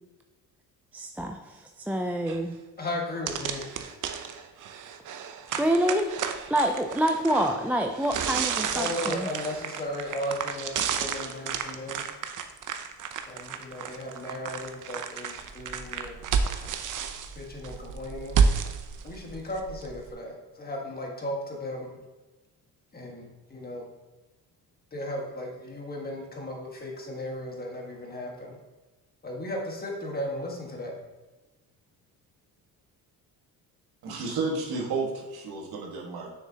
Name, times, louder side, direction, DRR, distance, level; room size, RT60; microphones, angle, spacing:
voice 1, 0.9-2.6 5.6-6.2 6.5-9.3, right 1 dB, 5° right, 3 dB, 0.3 m, -27 dB
sound 1, 2.3-2.4 2.8-2.9 3.3-20.1, right 6 dB, 55° right, 0.7 m, -31 dB
voice 2, 2.8-3.7 8.7-12.1 13.3-16.3 16.6-16.7 17.3-18.4 19.0-22.0 22.9-23.9 24.9-28.6 29.2-31.0, left 1 dB, 25° left, 0 dB, 1.5 m, -36 dB
voice 3, 34.0-36.3, right 3 dB, 75° right, -1 dB, 1.7 m, -31 dB
6.5 x 6.3 x 2.8 m, 1.2 s
cardioid pair, 105°, 38 cm